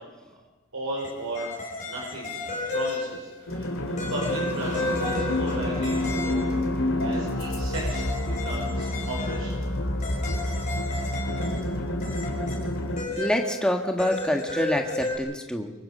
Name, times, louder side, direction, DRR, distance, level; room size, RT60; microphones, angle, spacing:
voice 1, 0.7-1.5 1.8-9.7, right 1 dB, 75° right, -2 dB, 5.1 m, -36 dB
sound 1, 1.0-3.4 4.0-6.5 7.7-11.8 12.0-15.2, left 2 dB, 35° left, 5.3 m, -33 dB
sound 2, 3.5-13.0, left 1 dB, 65° left, 3.2 m, -28 dB
voice 2, 13.2-15.7, left 1 dB, 5° left, 2 dB, 1.6 m, -26 dB
24.5 x 24.0 x 5.6 m, 1.2 s
head